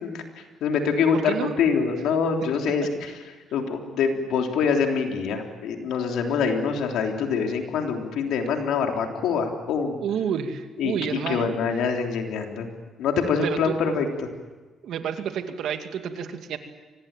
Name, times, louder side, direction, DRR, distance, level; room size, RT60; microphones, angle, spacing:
voice 1, 0.0-3.1 3.5-10.0 10.8-12.7 13.0-14.3, left 5 dB, 85° left, 3 dB, 3.4 m, -25 dB
voice 2, 1.1-1.5 10.0-11.5 13.4-13.7 14.8-16.6, right 8 dB, 75° right, 6 dB, 2.4 m, -29 dB
25.0 x 19.5 x 9.0 m, 1.3 s
cardioid pair, 90°, 0 cm